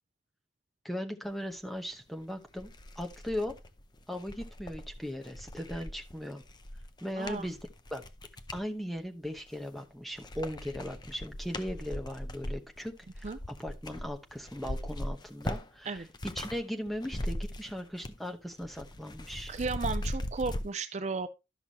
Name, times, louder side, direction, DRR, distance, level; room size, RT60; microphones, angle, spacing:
voice 1, 0.8-3.5 4.1-6.4 7.0-7.6 7.9-8.0 8.5-13.3 13.6-16.0 16.3-19.5, equal, ahead, 1.0 m, -38 dB
sound 1, 2.0-2.1 2.5-8.7 9.2-9.9 10.2-16.6 16.9-18.3 18.5-20.6, left 1 dB, 25° left, 0.6 m, -39 dB
voice 2, 7.1-7.5 13.2-13.4 15.8-16.1 19.5-21.3, right 4 dB, 40° right, 0.5 m, -34 dB
12.0 x 5.9 x 2.9 m
head